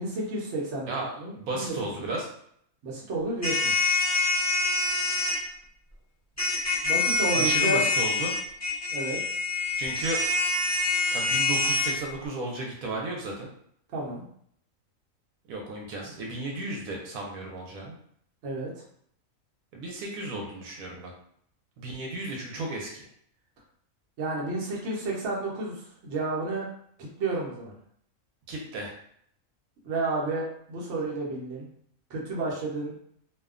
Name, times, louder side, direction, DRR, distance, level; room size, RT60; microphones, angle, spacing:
voice 1, 0.0-1.7 2.8-3.7 6.8-7.8 8.9-9.2 13.9-14.2 18.4-18.7 24.2-26.7 27.0-27.7 29.8-31.7 32.1-32.9, right 2 dB, 60° right, -3 dB, 1.0 m, -31 dB
voice 2, 0.9-2.3 7.3-8.3 9.8-10.2 10.9-13.5 15.5-18.0 19.7-21.1 21.8-23.1 28.5-28.9, right 2 dB, 85° right, -1 dB, 1.1 m, -34 dB
sound 1, 3.4-5.4 6.4-11.9, left 3 dB, 20° left, 0.5 m, -25 dB
2.7 x 2.2 x 2.4 m, 0.65 s
omnidirectional pair, 1.5 m